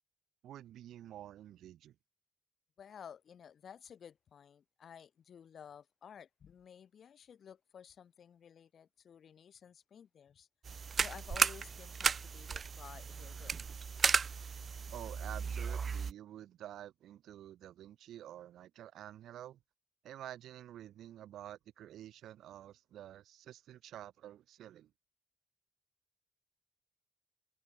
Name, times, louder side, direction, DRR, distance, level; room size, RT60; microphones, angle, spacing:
voice 1, 0.4-1.9 14.9-19.6 20.0-24.9, right 12 dB, 90° right, 3.1 m, -49 dB
voice 2, 2.8-10.5 11.0-13.5, left 8 dB, 60° left, 5.8 m, -54 dB
sound 1, 10.6-16.1, right 6 dB, 45° right, 1.0 m, -34 dB
cardioid pair, 105°, 0 cm